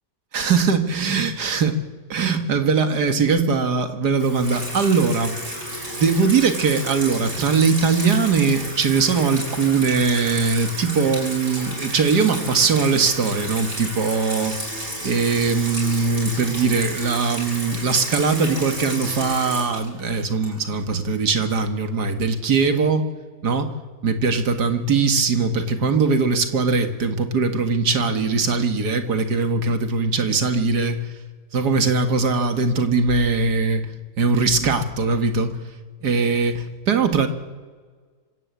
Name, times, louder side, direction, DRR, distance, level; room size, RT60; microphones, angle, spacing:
voice 1, 0.3-1.7 2.1-5.4 5.9-14.6 15.0-23.1 23.4-23.7 24.0-31.1 31.5-33.9 34.2-35.5 36.0-37.3, right 4 dB, 90° right, 8 dB, 2.3 m, -21 dB
Water tap faucet / Sink (filling or washing), 4.2-20.9, right 1 dB, 35° right, 6.4 m, -32 dB
26.0 x 14.0 x 8.3 m, 1.5 s
omnidirectional pair, 1.7 m